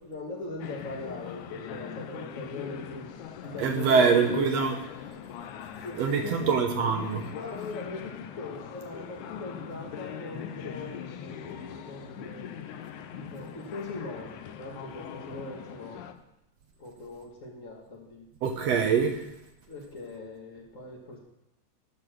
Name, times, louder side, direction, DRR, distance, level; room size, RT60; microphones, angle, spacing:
voice 1, 0.0-3.1 3.4-4.4 5.8-6.5 7.3-12.5 13.1-16.0 16.8-18.3 19.7-21.2, left 2 dB, 55° left, 0 dB, 0.8 m, -40 dB
sound 1, 0.6-16.1, left 9 dB, 80° left, 2.1 m, -41 dB
voice 2, 3.6-4.8 6.0-7.2 18.4-19.2, right 6 dB, 70° right, 4 dB, 1.7 m, -24 dB
10.5 x 6.5 x 6.3 m, 0.91 s
omnidirectional pair, 3.6 m